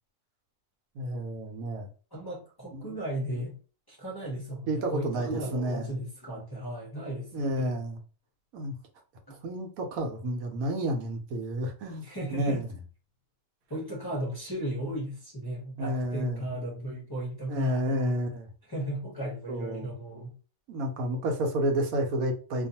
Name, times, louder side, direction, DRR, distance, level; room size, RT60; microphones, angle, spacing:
voice 1, 1.0-1.9 2.7-3.0 4.7-6.0 7.3-8.0 8.5-8.7 9.4-12.7 15.8-16.4 17.5-18.5 19.5-19.9 20.7-22.7, right 1 dB, 75° right, 1.1 m, -30 dB
voice 2, 2.1-3.6 3.9-7.7 9.3-9.4 12.0-12.6 13.7-18.2 18.7-20.3, right 1 dB, 30° left, 0.4 m, -35 dB
2.5 x 2.3 x 2.7 m
omnidirectional pair, 1.6 m